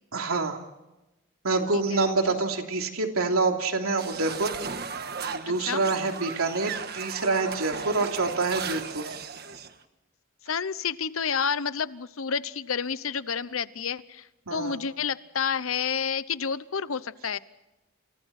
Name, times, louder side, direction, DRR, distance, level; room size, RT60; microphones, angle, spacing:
voice 1, 0.1-0.6 1.4-4.5 5.3-9.1 14.5-14.8, right 3 dB, 90° right, 3 dB, 3.1 m, -26 dB
sound 1, 4.0-9.7, right 5 dB, 45° right, 1.5 m, -36 dB
voice 2, 5.4-5.8 7.7-8.1 10.5-17.4, left 6 dB, 75° left, 15 dB, 0.9 m, -30 dB
29.5 x 28.5 x 4.3 m, 0.99 s
head